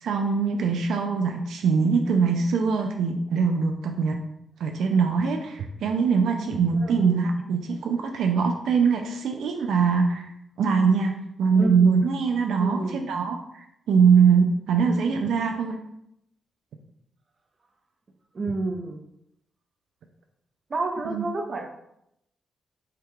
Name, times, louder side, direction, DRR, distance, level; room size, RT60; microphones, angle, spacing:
voice 1, 0.0-4.2 4.6-10.3 10.6-11.1 11.4-15.8 21.1-21.2, right 5 dB, 90° right, 4 dB, 0.4 m, -22 dB
voice 2, 6.8-7.2 11.5-12.0 12.6-13.1 18.3-19.0 20.7-21.6, right 2 dB, 40° right, 4 dB, 0.7 m, -29 dB
5.5 x 2.3 x 3.7 m, 0.80 s
cardioid pair, 110°, 0 cm